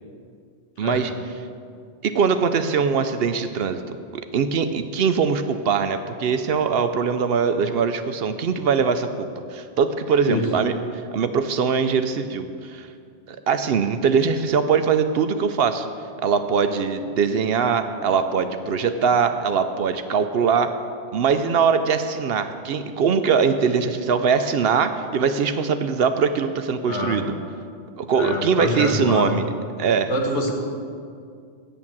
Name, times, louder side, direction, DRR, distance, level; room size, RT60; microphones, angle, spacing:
voice 1, 0.8-1.1 2.0-10.7 11.1-12.9 13.3-15.9 16.2-20.7 21.1-27.3 28.0-29.5 29.8-30.1, right 6 dB, 65° right, 9 dB, 0.7 m, -22 dB
voice 2, 26.8-27.2 28.1-29.4 30.1-30.5, left 2 dB, 85° left, 2 dB, 1.7 m, -25 dB
8.6 x 7.8 x 7.2 m, 2.3 s
omnidirectional pair, 1.2 m